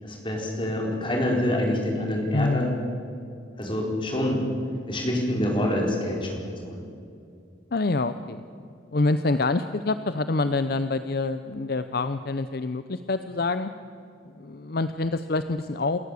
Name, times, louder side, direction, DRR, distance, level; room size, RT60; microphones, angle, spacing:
voice 1, 0.0-2.7 3.6-4.4 4.9-6.8, left 1 dB, 25° left, 0 dB, 4.4 m, -26 dB
voice 2, 2.3-2.8 7.7-8.4 8.9-13.7 14.3-16.0, left 3 dB, 55° left, 11 dB, 0.6 m, -26 dB
28.0 x 14.5 x 8.3 m, 2.6 s
head